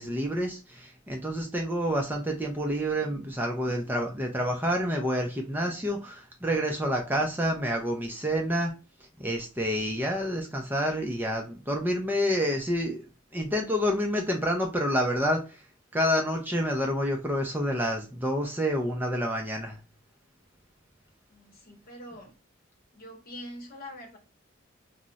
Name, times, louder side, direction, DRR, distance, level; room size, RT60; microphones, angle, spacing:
voice 1, 0.0-8.7 9.2-15.6 15.9-19.8, equal, 10° right, 0.4 m, -28 dB
voice 2, 21.3-22.3 22.9-24.2, equal, 45° left, 0.8 m, -44 dB
2.3 x 2.0 x 3.8 m
head